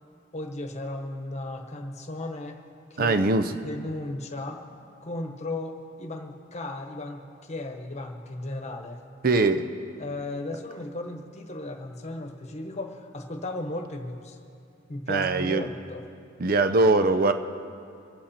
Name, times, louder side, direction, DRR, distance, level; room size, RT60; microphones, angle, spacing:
voice 1, 0.3-2.6 2.9-3.3 3.6-4.6 5.0-9.0 10.0-14.4 14.9-16.0, left 2 dB, 35° left, 4 dB, 1.2 m, -35 dB
voice 2, 3.0-3.4 9.2-9.7 15.1-15.6 16.4-17.3, right 3 dB, 50° right, 9 dB, 0.6 m, -21 dB
25.5 x 8.5 x 4.3 m, 2.4 s
head